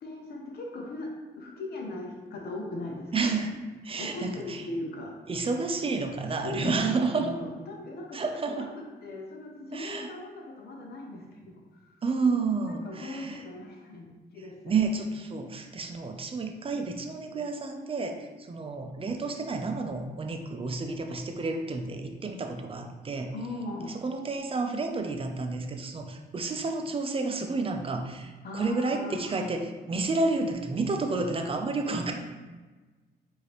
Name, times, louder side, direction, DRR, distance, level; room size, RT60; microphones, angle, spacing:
voice 1, 0.0-3.3 3.9-5.2 6.4-8.2 8.5-8.6 9.0-12.0 12.7-14.6 23.3-24.0 28.4-29.5, left 2 dB, 70° left, 0 dB, 0.7 m, -39 dB
voice 2, 3.1-3.6 3.8-4.6 5.3-7.3 8.1-8.7 9.7-10.1 12.0-13.5 14.6-23.3 23.9-32.1, right 3 dB, 35° right, 4 dB, 0.5 m, -30 dB
4.9 x 2.7 x 3.0 m, 1.3 s
cardioid pair, 85°, 17 cm